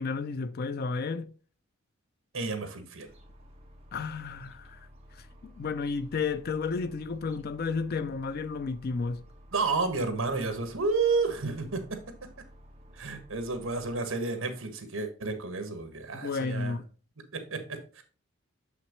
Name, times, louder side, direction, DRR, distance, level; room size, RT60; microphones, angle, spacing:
voice 1, 0.0-1.3 3.9-4.8 5.2-5.3 5.6-9.2 16.2-16.9, left 4 dB, 45° left, 0.4 m, -32 dB
voice 2, 2.3-3.1 9.5-12.0 12.9-16.8 17.3-18.0, right 4 dB, 65° right, 1.4 m, -31 dB
sound 1, 3.1-14.0, equal, 30° right, 1.2 m, -53 dB
6.4 x 5.9 x 3.0 m
head